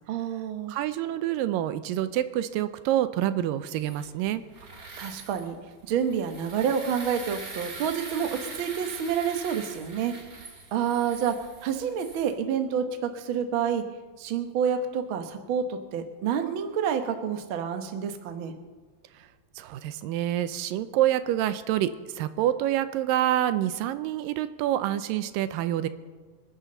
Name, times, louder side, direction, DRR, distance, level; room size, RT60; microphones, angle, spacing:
voice 1, 0.1-0.8 5.0-5.6 5.8-10.1 10.7-11.3 11.6-13.8 14.2-18.5, right 7 dB, 65° right, 6 dB, 1.2 m, -28 dB
voice 2, 0.7-4.4 19.2-19.3 19.6-25.9, right 12 dB, 85° right, 12 dB, 2.4 m, -27 dB
sound 1, 3.7-12.3, right 3 dB, 30° right, 1.8 m, -43 dB
26.0 x 11.0 x 3.9 m, 1.5 s
omnidirectional pair, 4.0 m